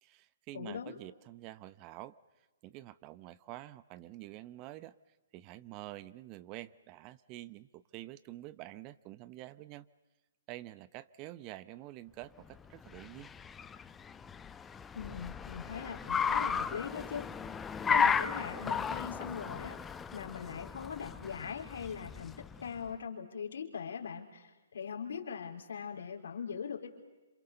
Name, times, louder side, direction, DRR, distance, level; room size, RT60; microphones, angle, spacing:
voice 1, 0.0-2.2 2.6-4.9 5.3-9.9 10.5-13.3, right 16 dB, 30° right, 16 dB, 0.8 m, -48 dB
voice 2, 0.5-1.0 14.9-17.3 17.9-19.8 20.1-26.9, left 6 dB, 65° left, 3 dB, 3.8 m, -41 dB
Car, 12.5-22.8, left 6 dB, 15° left, 0.8 m, -35 dB
27.5 x 27.0 x 6.8 m, 1.2 s
figure-of-eight pair, 125°, 0 cm